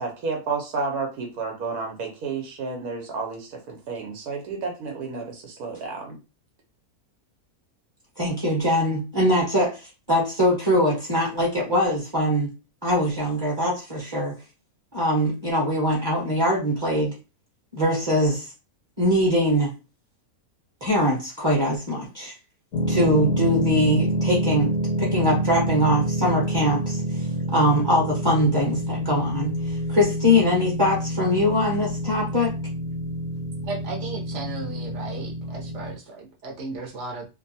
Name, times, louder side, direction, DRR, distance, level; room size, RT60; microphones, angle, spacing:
voice 1, 0.0-6.2, right 4 dB, 90° right, 1 dB, 1.3 m, -31 dB
voice 2, 8.2-12.5 12.8-14.3 14.9-17.1 17.7-18.5 19.0-19.7 20.8-22.3 22.9-24.7 25.0-27.2 27.5-32.5, equal, 20° right, -4 dB, 0.9 m, -22 dB
sound 1, 22.7-35.9, right 1 dB, 90° left, 1.3 m, -27 dB
voice 3, 33.6-37.3, right 3 dB, 60° right, 0 dB, 1.0 m, -35 dB
2.9 x 2.2 x 2.7 m, 0.29 s
omnidirectional pair, 1.5 m